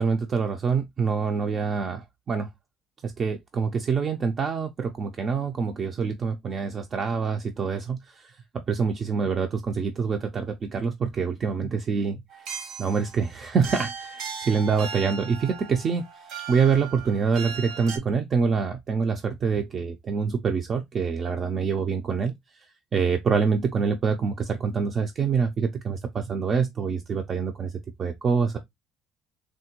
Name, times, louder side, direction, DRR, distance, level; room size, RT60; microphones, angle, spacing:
voice 1, 0.0-2.5 3.0-12.5 12.8-16.0 16.5-22.7 22.9-27.7 28.0-28.6, right 5 dB, 30° right, 0.3 m, -26 dB
sound 1, 12.3-18.0, right 6 dB, 65° right, 0.8 m, -37 dB
3.5 x 2.2 x 2.7 m
cardioid pair, 170°, 0 cm